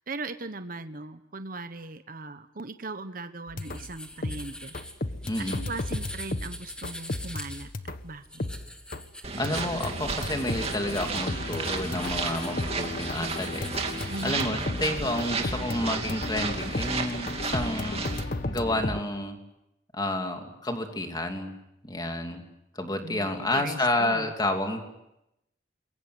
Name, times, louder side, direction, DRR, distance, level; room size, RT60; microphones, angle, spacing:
voice 1, 0.1-4.7 5.7-8.5 14.1-14.4 23.0-24.3, right 2 dB, 50° right, 10 dB, 1.2 m, -39 dB
sound 1, 3.5-8.1 8.4-9.1 9.4-19.0, left 2 dB, 50° left, 1.2 m, -34 dB
sound 2, 3.6-14.3, left 1 dB, 5° left, 2.0 m, -44 dB
voice 2, 5.2-5.7 9.4-19.4 19.9-21.6 21.8-22.4 22.7-24.8, left 1 dB, 25° left, 4 dB, 2.9 m, -30 dB
sound 3, 9.2-18.2, right 4 dB, 35° right, 2.6 m, -33 dB
27.5 x 22.5 x 8.0 m, 0.87 s
head